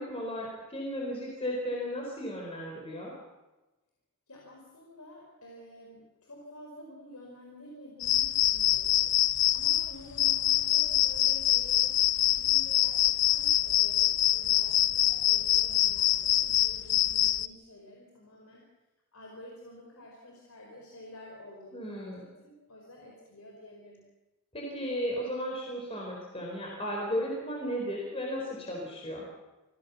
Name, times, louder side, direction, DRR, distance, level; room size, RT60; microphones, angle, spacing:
voice 1, 0.0-3.1 21.7-22.3 24.5-29.3, equal, 25° left, -2 dB, 4.3 m, -35 dB
voice 2, 4.3-9.1 9.5-18.6 19.1-24.1, left 1 dB, 85° left, -1 dB, 4.9 m, -50 dB
sound 1, 8.0-17.5, left 13 dB, 55° left, 0.7 m, -25 dB
27.5 x 17.0 x 7.1 m, 1.1 s
head